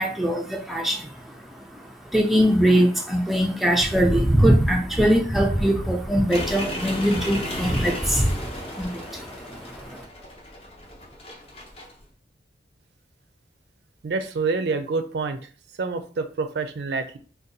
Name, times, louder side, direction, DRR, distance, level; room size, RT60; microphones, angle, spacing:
voice 1, 0.0-10.0, equal, ahead, 1 dB, 0.4 m, -22 dB
sound 1, 6.3-12.0, left 1 dB, 35° left, 0.7 m, -35 dB
voice 2, 14.0-15.4 15.8-17.2, right 4 dB, 70° right, 8 dB, 0.4 m, -27 dB
2.7 x 2.2 x 3.8 m, 0.40 s
head